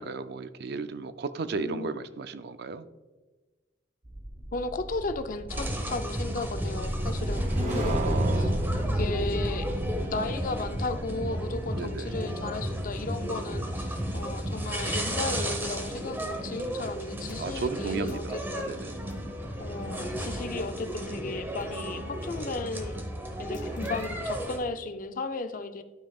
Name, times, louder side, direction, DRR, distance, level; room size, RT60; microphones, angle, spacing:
voice 1, 0.0-2.9 7.8-8.6 11.7-12.1 17.4-18.4 18.7-18.9, right 4 dB, 60° right, 11 dB, 0.4 m, -34 dB
voice 2, 1.6-1.9 4.5-8.5 8.9-18.8 19.6-23.0 23.4-25.8, left 3 dB, 50° left, 9 dB, 0.5 m, -35 dB
sound 1, 4.0-14.5 14.8-15.1, equal, 40° right, 0.9 m, -32 dB
sound 2, 5.5-24.6, equal, 10° right, 0.9 m, -34 dB
sound 3, 17.3-18.3 19.1-21.0 21.6-21.7 22.2-22.4 22.7-24.5, left 1 dB, 90° left, 1.2 m, -49 dB
12.0 x 5.5 x 2.4 m, 1.2 s
head